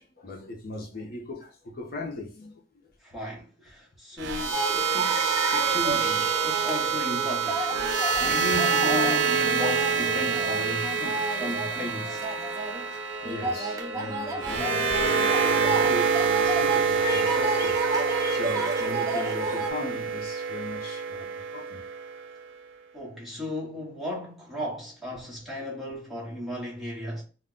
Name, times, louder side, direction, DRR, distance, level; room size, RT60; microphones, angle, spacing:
voice 1, 0.0-2.5 7.7-8.3 13.2-21.8, left 2 dB, 55° left, 0.6 m, -38 dB
voice 2, 3.0-12.2 22.9-27.2, left 1 dB, ahead, 0.9 m, -35 dB
sound 1, 4.2-22.3, right 6 dB, 85° right, 0.4 m, -27 dB
sound 2, 4.5-19.7, right 1 dB, 20° right, 0.5 m, -32 dB
2.2 x 2.1 x 3.6 m
head